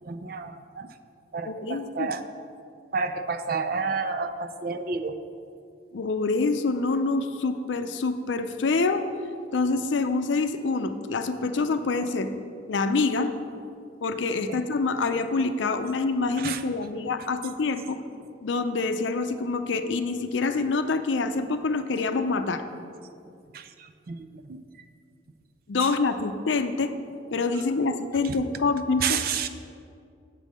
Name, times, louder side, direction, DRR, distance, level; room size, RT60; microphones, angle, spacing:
voice 1, 0.0-0.9 1.3-2.2 2.9-5.1 16.4-16.6 23.5-24.2 24.4-24.6 25.8-25.9 28.2-28.4 29.0-29.5, right 5 dB, 50° right, 9 dB, 0.4 m, -30 dB
voice 2, 1.4-2.1 5.9-9.0 9.5-12.3 12.7-13.3 14.0-18.0 18.4-22.6 25.7-26.9 27.3-29.2, left 3 dB, 85° left, 9 dB, 0.5 m, -26 dB
7.5 x 5.4 x 6.3 m, 2.4 s
head